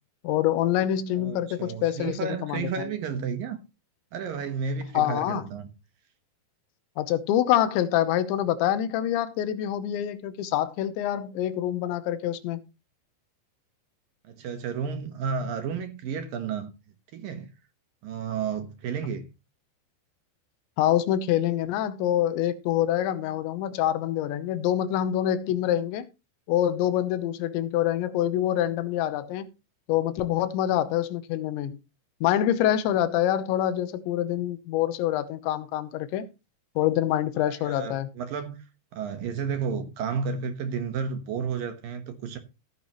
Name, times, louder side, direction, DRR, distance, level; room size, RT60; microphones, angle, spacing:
voice 1, 0.2-2.9 4.9-5.4 7.0-12.6 20.8-26.1 26.5-29.5 29.9-31.8 32.2-36.3 36.8-38.1, left 11 dB, 85° left, 3.3 m, -26 dB
voice 2, 1.1-3.6 4.1-5.7 14.2-16.7 17.1-17.5 18.0-19.3 37.4-38.6 38.9-42.4, right 6 dB, 65° right, 2.6 m, -32 dB
15.5 x 9.4 x 3.0 m
omnidirectional pair, 5.1 m